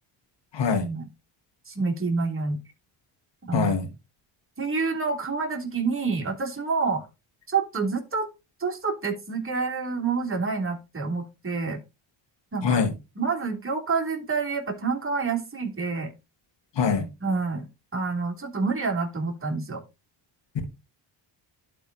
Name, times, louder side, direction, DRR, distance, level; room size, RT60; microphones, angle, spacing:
voice 1, 0.5-0.9 3.5-3.8 12.6-12.9 16.8-17.1, left 5 dB, 60° left, 7 dB, 2.3 m, -23 dB
voice 2, 1.7-2.6 3.4-3.8 4.6-7.1 7.5-8.3 8.6-11.8 12.5-12.8 13.1-16.1 17.2-17.7 17.9-19.8, right 4 dB, 25° right, 0 dB, 3.0 m, -28 dB
11.5 x 4.2 x 4.1 m, 0.26 s
cardioid pair, 70°, 49 cm